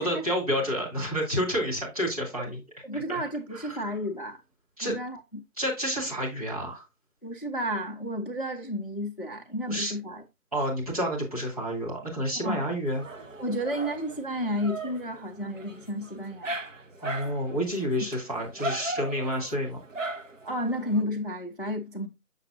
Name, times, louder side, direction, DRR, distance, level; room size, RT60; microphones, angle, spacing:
voice 1, 0.0-2.6 2.9-3.2 3.5-3.9 4.8-5.0 5.6-6.8 9.7-9.9 10.5-13.1 17.0-19.8, equal, 25° right, 2.1 m, -29 dB
voice 2, 2.8-4.4 4.8-5.2 7.2-10.2 12.4-12.6 13.4-16.5 20.4-22.1, equal, 35° left, 0.6 m, -32 dB
Dog, 12.9-21.0, right 2 dB, 60° right, 0.9 m, -38 dB
6.7 x 6.3 x 2.6 m
figure-of-eight pair, 170°, 44 cm